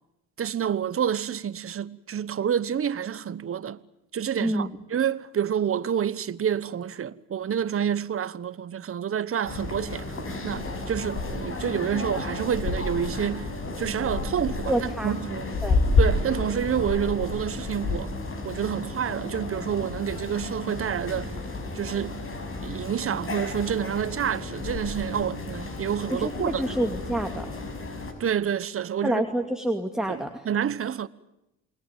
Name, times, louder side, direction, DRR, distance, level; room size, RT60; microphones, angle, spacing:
voice 1, 0.4-3.8 4.1-10.2 10.4-13.5 13.8-15.5 16.0-18.1 18.4-21.4 21.7-22.2 22.6-26.8 28.2-29.2 30.1-31.1, right 8 dB, 45° right, 1.3 m, -28 dB
sound 1, 9.4-28.1, left 3 dB, 45° left, 6.3 m, -31 dB
voice 2, 14.7-15.2 15.6-15.8 26.1-27.5 29.0-30.4, right 1 dB, ahead, 2.4 m, -28 dB
28.5 x 21.0 x 9.1 m
cardioid pair, 90°, 30 cm